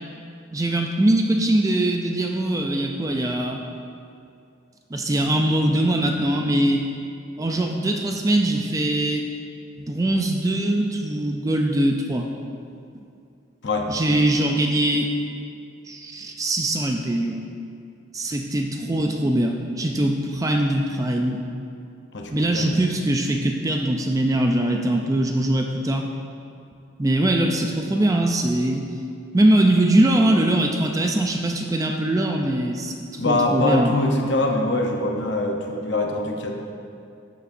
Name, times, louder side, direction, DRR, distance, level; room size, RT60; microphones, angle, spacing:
voice 1, 0.5-3.6 4.9-6.9 7.4-9.2 9.8-12.3 12.9-13.0 13.9-15.1 15.9-17.4 18.1-21.4 22.3-26.1 27.0-28.8 29.3-33.9, right 1 dB, 15° right, 3 dB, 0.4 m, -22 dB
voice 2, 22.1-22.7 33.2-36.5, left 2 dB, 55° left, 2 dB, 0.8 m, -23 dB
12.0 x 7.0 x 2.6 m, 2.5 s
head